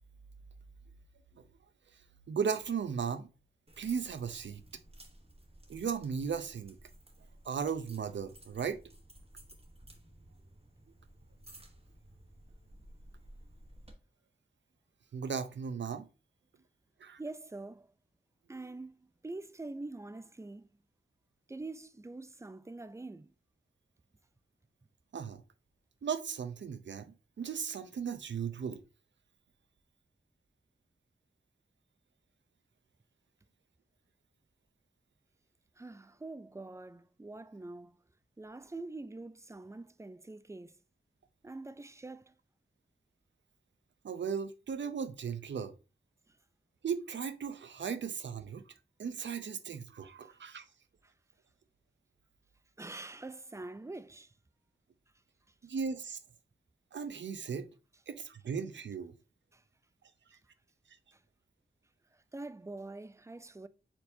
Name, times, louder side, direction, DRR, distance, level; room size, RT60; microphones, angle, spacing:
voice 1, 2.3-3.3 3.8-4.6 5.7-6.8 7.4-8.8 15.1-16.1 17.0-17.2 25.1-25.4 26.0-28.8 44.0-45.7 46.8-48.6 49.0-50.6 55.6-56.2 56.9-57.7 58.1-59.1, right 6 dB, 80° right, 0.5 m, -36 dB
sound 1, 3.7-13.9, right 1 dB, 30° right, 1.0 m, -56 dB
voice 2, 17.2-17.9 18.5-20.7 21.5-23.3 35.8-38.0 38.4-40.7 41.4-42.3 51.0-51.1 52.8-54.3 59.5-59.6 61.1-61.2 62.3-63.7, right 2 dB, 15° right, 0.3 m, -45 dB
4.5 x 4.0 x 2.6 m
wide cardioid pair, 60°, 19 cm